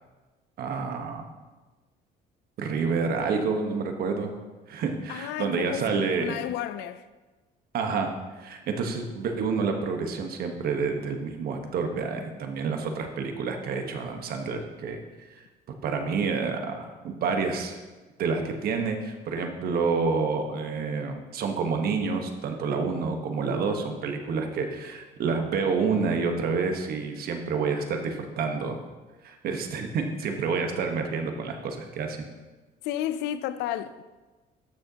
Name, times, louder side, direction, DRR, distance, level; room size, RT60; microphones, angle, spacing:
voice 1, 0.6-1.3 2.6-4.3 4.7-6.4 7.7-15.0 15.3-15.4 15.8-17.8 18.2-28.8 29.2-32.2, right 5 dB, 65° right, 1.2 m, -28 dB
voice 2, 5.1-7.1 32.8-34.0, left 11 dB, 90° left, 0.4 m, -32 dB
13.5 x 6.4 x 2.9 m
cardioid pair, 110°, 17 cm